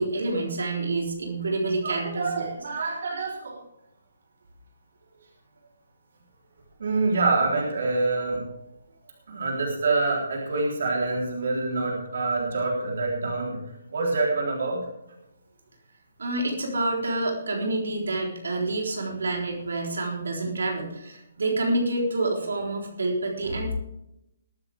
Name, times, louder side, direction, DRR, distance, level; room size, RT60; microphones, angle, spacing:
voice 1, 0.0-2.5 16.2-23.7, right 2 dB, 85° right, 0 dB, 4.0 m, -28 dB
voice 2, 1.8-3.6 6.8-8.5 9.3-13.6 13.9-14.9, right 3 dB, 65° right, -1 dB, 3.8 m, -26 dB
21.5 x 9.1 x 3.6 m, 0.87 s
hypercardioid pair, 165°, 0 cm